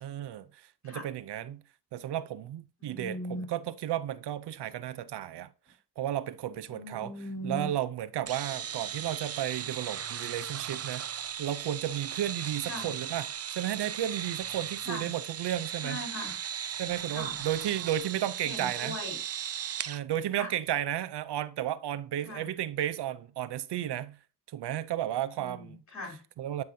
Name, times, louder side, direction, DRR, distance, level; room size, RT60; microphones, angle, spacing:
voice 1, 0.0-1.6 1.9-3.2 3.5-5.5 6.0-7.1 7.4-16.0 16.8-19.0 19.9-24.2 24.5-25.8 26.4-26.6, right 11 dB, 90° right, 0.6 m, -33 dB
voice 2, 2.8-3.5 6.7-7.7 12.7-13.0 14.8-15.1 15.8-16.4 17.1-17.4 18.4-19.2 20.3-20.5 22.2-22.5 25.3-26.2, equal, 45° left, 3.7 m, -39 dB
sound 1, 8.3-20.0, right 9 dB, 40° right, 0.4 m, -37 dB
9.5 x 5.2 x 2.7 m
cardioid pair, 80°, 39 cm